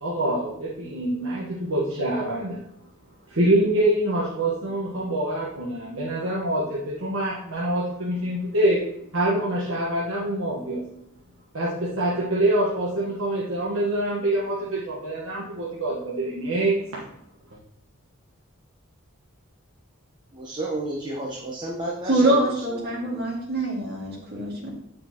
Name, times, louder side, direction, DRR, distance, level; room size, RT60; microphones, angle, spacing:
voice 1, 0.0-2.6 3.3-8.8 9.1-10.8 11.5-17.0, right 1 dB, 70° right, -5 dB, 1.3 m, -25 dB
voice 2, 20.3-23.3, right 1 dB, 20° right, -2 dB, 0.9 m, -32 dB
voice 3, 22.1-24.7, right 1 dB, 50° right, -4 dB, 2.3 m, -24 dB
8.4 x 5.1 x 2.9 m, 0.73 s
head